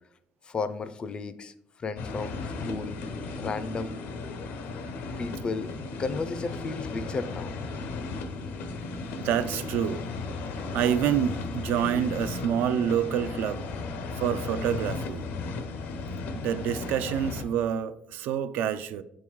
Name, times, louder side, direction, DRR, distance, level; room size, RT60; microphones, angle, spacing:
voice 1, 0.4-1.5 1.8-3.0 3.4-4.0 5.2-5.7 6.0-7.5, left 4 dB, 30° left, 0.4 m, -33 dB
sound 1, 2.0-17.4, left 3 dB, 80° left, 0.7 m, -35 dB
voice 2, 8.7-10.1 10.6-13.7 14.2-15.3 16.3-19.0, right 9 dB, 80° right, 0.4 m, -28 dB
6.9 x 3.6 x 4.6 m
cardioid pair, 135°, 3 cm